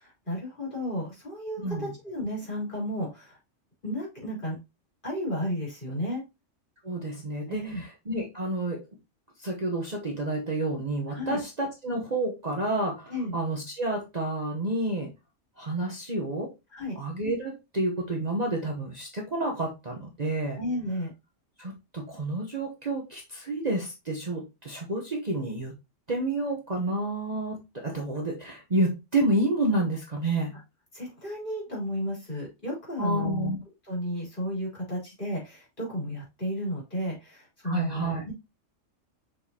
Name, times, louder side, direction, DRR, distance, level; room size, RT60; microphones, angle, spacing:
voice 1, 0.0-3.4 3.8-4.6 5.0-6.2 7.5-7.8 11.1-11.4 13.1-13.3 16.7-17.0 20.6-21.1 30.9-33.5 33.8-38.3, equal, 40° left, -4 dB, 4.3 m, -33 dB
voice 2, 6.8-8.8 9.4-15.1 15.6-16.5 17.0-20.6 21.6-25.7 26.1-30.6 33.0-33.6 37.6-38.2, right 2 dB, 35° right, 0 dB, 1.1 m, -29 dB
6.4 x 5.3 x 2.8 m, 0.24 s
omnidirectional pair, 1.3 m